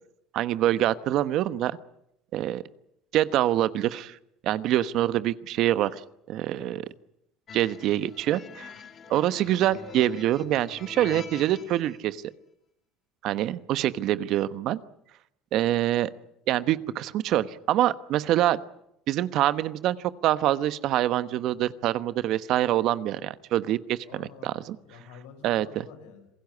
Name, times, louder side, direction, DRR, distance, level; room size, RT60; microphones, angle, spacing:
voice 1, 0.3-1.7 2.3-2.6 3.1-4.2 4.4-6.0 6.3-6.8 7.5-8.7 9.1-12.2 13.2-14.8 15.5-16.1 16.5-18.6 19.1-24.8 25.4-25.7, right 13 dB, 60° right, 14 dB, 1.1 m, -25 dB
sound 1, 7.5-12.0, left 6 dB, 40° left, 2.6 m, -44 dB
voice 2, 24.1-26.3, left 7 dB, 80° left, 6 dB, 6.2 m, -49 dB
27.0 x 16.5 x 9.6 m, 0.79 s
supercardioid pair, 90°, 0 cm